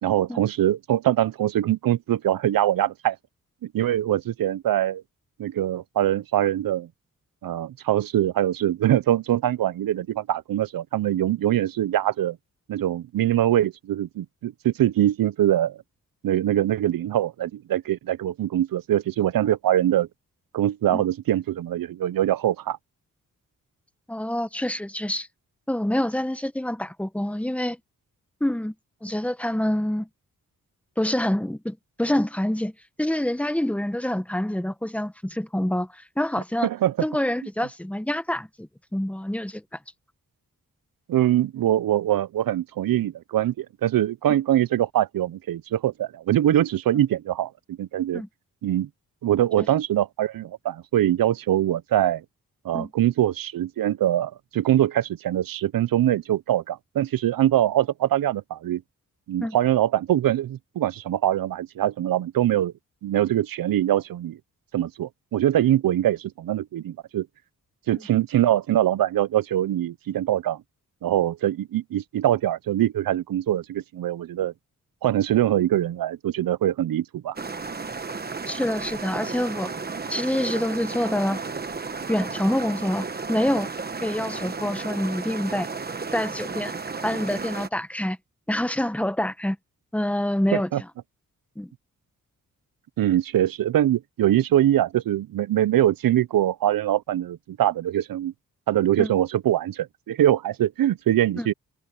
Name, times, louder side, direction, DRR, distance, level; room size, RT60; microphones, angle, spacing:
voice 1, 0.0-3.2 3.6-5.0 5.4-6.9 7.4-12.4 12.7-15.8 16.2-20.1 20.5-22.8 36.6-37.1 41.1-48.2 48.6-48.9 49.2-52.2 52.6-58.8 59.3-62.7 63.0-64.4 64.7-67.3 67.9-70.6 71.0-74.5 75.0-77.4 90.5-90.8 93.0-98.3 98.7-101.5, right 12 dB, 80° right, 0.6 m, -23 dB
voice 2, 24.1-25.3 25.7-27.8 28.4-28.7 29.0-30.1 31.0-32.7 33.0-36.7 37.0-39.6 48.1-48.3 49.6-49.7 52.7-52.9 59.4-59.6 78.5-79.7 80.1-81.4 82.1-83.7 84.0-85.7 86.1-86.7 87.0-88.2 88.5-89.6 89.9-90.9 91.6-91.7 99.0-99.1 101.4-101.5, left 1 dB, 5° left, 1.2 m, -26 dB
sound 1, 77.4-87.7, right 4 dB, 30° right, 1.2 m, -33 dB
wide cardioid pair, 145°, 34 cm